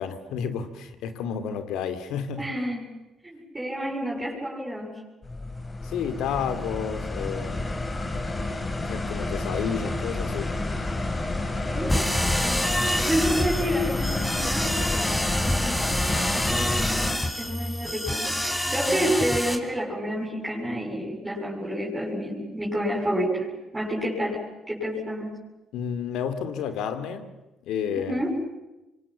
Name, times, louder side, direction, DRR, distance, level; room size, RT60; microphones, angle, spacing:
voice 1, 0.0-2.5 5.8-7.8 8.8-10.5 25.7-27.3 27.6-28.2, left 7 dB, 75° left, 10 dB, 2.6 m, -31 dB
voice 2, 2.4-2.9 3.2-5.0 11.6-12.0 12.4-16.0 16.3-25.4 28.0-28.4, equal, 20° right, -4 dB, 7.8 m, -29 dB
sound 1, 5.2-17.1, left 2 dB, 30° left, 3.9 m, -29 dB
sound 2, 11.9-19.6, equal, 10° left, 4.1 m, -27 dB
26.0 x 25.0 x 7.5 m, 1.0 s
supercardioid pair, 60°, 0 cm